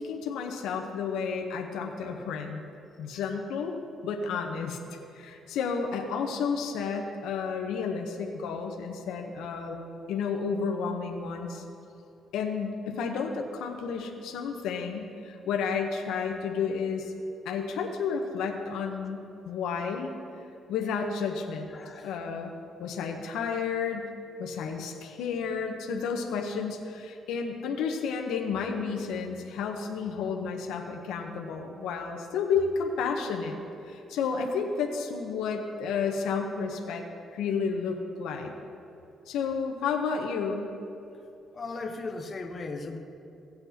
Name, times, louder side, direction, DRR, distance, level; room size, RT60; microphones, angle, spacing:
voice 1, 0.0-2.6 3.0-4.8 5.1-9.8 10.1-11.6 12.3-17.1 17.4-20.1 20.7-21.7 22.0-22.5 22.8-24.1 24.4-33.6 33.9-37.0 37.3-38.5 39.3-40.7, left 5 dB, 90° left, 2 dB, 0.8 m, -31 dB
voice 2, 21.7-22.2 41.5-43.0, left 3 dB, 40° left, 4 dB, 1.0 m, -37 dB
17.5 x 7.9 x 2.8 m, 2.7 s
cardioid pair, 90°, 0 cm